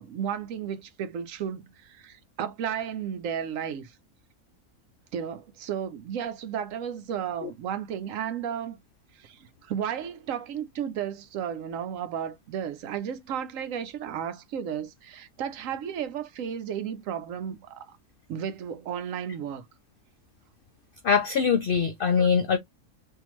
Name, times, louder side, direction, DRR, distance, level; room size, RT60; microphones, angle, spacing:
voice 1, 0.0-4.0 5.1-8.8 9.1-18.0 18.3-19.7 22.2-22.3, right 8 dB, 70° right, 0.9 m, -33 dB
voice 2, 21.0-22.6, left 6 dB, 85° left, 0.4 m, -22 dB
3.7 x 2.6 x 3.0 m
omnidirectional pair, 1.6 m